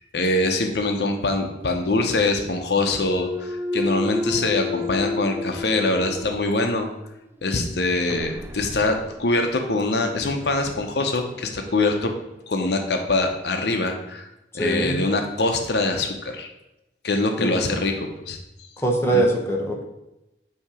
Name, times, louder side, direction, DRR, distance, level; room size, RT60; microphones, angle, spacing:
voice 1, 0.1-6.9 7.4-12.1 12.5-14.3 14.5-16.5 17.0-18.7 19.1-19.2, left 2 dB, 70° left, 4 dB, 0.7 m, -24 dB
Thump thud, 2.9-7.0 7.4-12.1, left 2 dB, 15° right, 0.4 m, -32 dB
voice 2, 14.6-15.0 17.4-17.6 18.8-19.8, right 2 dB, 15° left, 0 dB, 0.9 m, -22 dB
8.5 x 2.8 x 4.9 m, 0.92 s
head